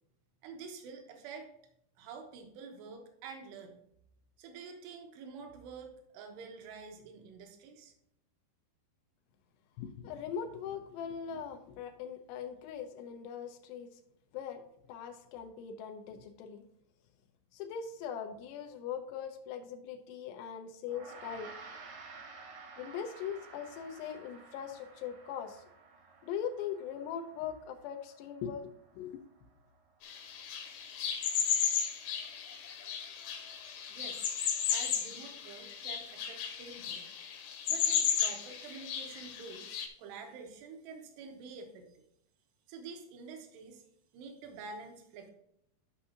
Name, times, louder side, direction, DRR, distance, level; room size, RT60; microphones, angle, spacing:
voice 1, 0.4-1.5 2.0-3.8 4.4-7.9 33.5-34.4 34.7-37.2 37.7-42.0 42.7-43.8 44.1-45.3, right 5 dB, 85° right, 4 dB, 3.2 m, -48 dB
voice 2, 9.8-13.9 14.3-14.6 14.9-16.6 17.5-21.6 22.8-25.6 26.2-29.3, left 7 dB, 85° left, 5 dB, 2.9 m, -41 dB
Gong, 20.9-30.4, right 4 dB, 60° right, 1.5 m, -53 dB
sound 1, 30.0-39.9, left 8 dB, 70° left, 2.4 m, -34 dB
12.5 x 5.6 x 2.8 m, 0.75 s
omnidirectional pair, 4.8 m